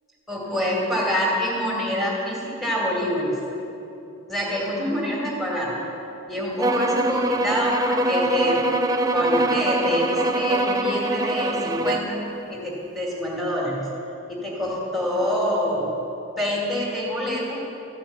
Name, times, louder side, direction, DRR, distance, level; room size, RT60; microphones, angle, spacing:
voice 1, 0.3-3.4 4.3-5.8 6.3-8.6 9.1-12.2 12.5-13.9 14.3-16.0 16.3-17.6, equal, ahead, -4 dB, 2.3 m, -26 dB
sound 1, 6.6-12.1, right 1 dB, 15° right, 0.5 m, -23 dB
14.0 x 5.7 x 8.7 m, 3.0 s
head